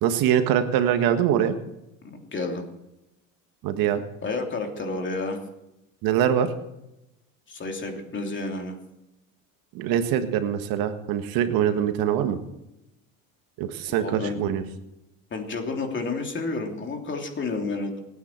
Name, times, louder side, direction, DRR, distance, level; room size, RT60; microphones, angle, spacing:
voice 1, 0.0-1.5 3.6-4.0 6.0-6.5 9.7-12.4 13.6-14.6, right 9 dB, 60° right, 8 dB, 1.6 m, -23 dB
voice 2, 2.0-2.6 4.2-5.4 7.5-8.8 13.9-14.4 15.3-18.0, left 3 dB, 30° left, 3 dB, 3.0 m, -30 dB
24.5 x 9.6 x 4.5 m, 0.89 s
supercardioid pair, 105°, 40 cm